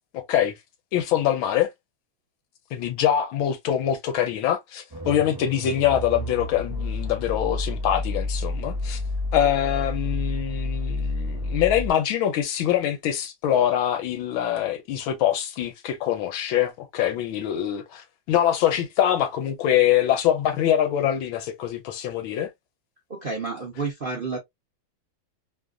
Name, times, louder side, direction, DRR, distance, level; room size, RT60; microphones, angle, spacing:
voice 1, 0.1-0.5 0.9-1.7 2.7-9.0 9.3-22.5, left 11 dB, 80° left, 1.5 m, -24 dB
sound 1, 4.9-11.9, left 2 dB, 20° right, 0.6 m, -30 dB
voice 2, 23.1-24.4, right 4 dB, 70° right, 0.5 m, -30 dB
3.4 x 2.4 x 2.2 m
omnidirectional pair, 2.2 m